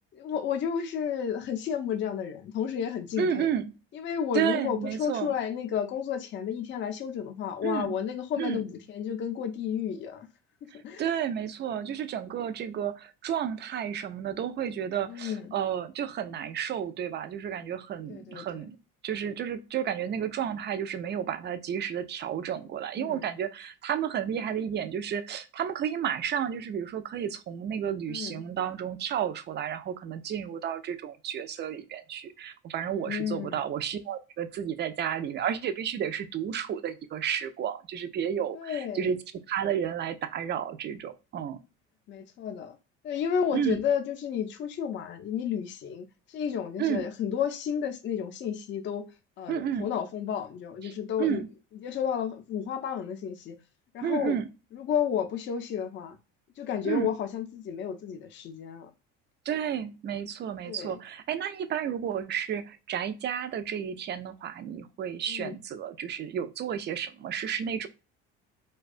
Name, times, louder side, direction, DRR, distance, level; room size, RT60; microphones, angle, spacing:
voice 1, 0.2-3.5 3.9-10.3 10.6-11.0 15.1-15.5 18.1-18.7 23.0-23.2 28.1-28.4 32.9-33.6 38.5-39.1 42.1-42.8 43.0-49.0 49.4-51.4 51.8-53.6 53.9-54.4 54.7-56.2 56.6-58.9 60.7-61.0 65.3-65.6, left 8 dB, 40° left, 0.5 m, -32 dB
voice 2, 3.2-3.7 4.3-5.3 7.6-7.9 8.4-8.6 10.7-18.8 19.0-39.2 39.5-41.6 43.5-43.8 46.8-47.0 49.5-49.9 50.8-50.9 51.2-51.5 54.0-54.5 56.8-57.1 59.5-67.9, right 9 dB, 35° right, 0.4 m, -32 dB
2.3 x 2.2 x 2.4 m
supercardioid pair, 80°, 30 cm